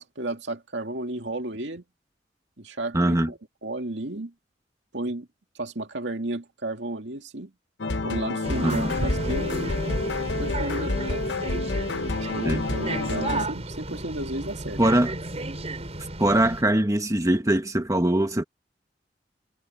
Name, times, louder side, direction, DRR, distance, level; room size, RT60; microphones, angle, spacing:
voice 1, 0.0-1.8 2.6-4.3 4.9-5.3 5.5-7.5 8.0-9.7 10.4-11.0 12.3-14.8, right 2 dB, 75° right, 2.4 m, -33 dB
voice 2, 2.9-3.3 8.6-8.9 12.4-12.6 14.8-15.1 16.2-18.4, right 1 dB, 20° right, 1.5 m, -22 dB
sound 1, 7.8-13.5, left 2 dB, 70° left, 1.0 m, -28 dB
sound 2, 8.4-16.6, right 2 dB, 35° right, 5.8 m, -33 dB
head